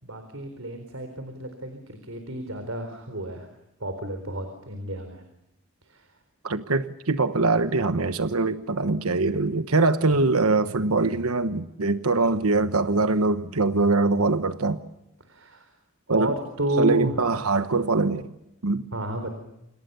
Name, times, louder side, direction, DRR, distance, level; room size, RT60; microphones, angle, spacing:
voice 1, 0.0-3.5 3.8-5.2 5.8-6.1 15.2-15.7 16.1-17.2 18.9-19.3, right 1 dB, 70° right, 7 dB, 4.2 m, -31 dB
voice 2, 6.4-14.8 16.1-16.3 16.8-18.3 18.6-18.8, right 3 dB, 85° right, 11 dB, 1.2 m, -23 dB
29.5 x 27.0 x 6.9 m, 0.87 s
head